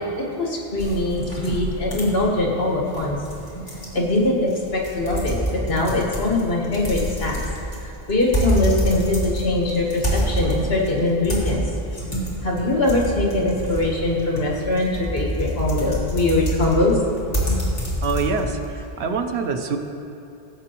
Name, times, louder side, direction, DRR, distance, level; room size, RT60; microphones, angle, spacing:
voice 1, 0.0-3.2 3.9-7.4 7.8-17.0, left 2 dB, 70° left, -2 dB, 1.8 m, -22 dB
sound 1, 0.8-18.7, equal, 35° left, 2.1 m, -27 dB
voice 2, 18.0-19.8, right 4 dB, 85° right, 6 dB, 1.0 m, -25 dB
16.0 x 7.8 x 3.0 m, 2.9 s
omnidirectional pair, 1.1 m